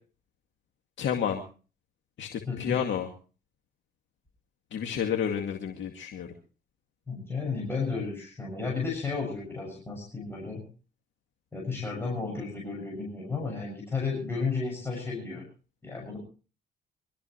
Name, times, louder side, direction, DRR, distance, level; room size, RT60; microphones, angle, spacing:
voice 1, 1.0-1.4 2.2-3.1 4.7-6.3, left 8 dB, 70° left, 2 dB, 2.2 m, -30 dB
voice 2, 2.5-2.8 7.1-10.6 11.5-15.4 15.8-16.2, left 4 dB, 10° left, -2 dB, 7.1 m, -33 dB
25.0 x 13.5 x 3.2 m, 0.38 s
cardioid pair, 90°, 20 cm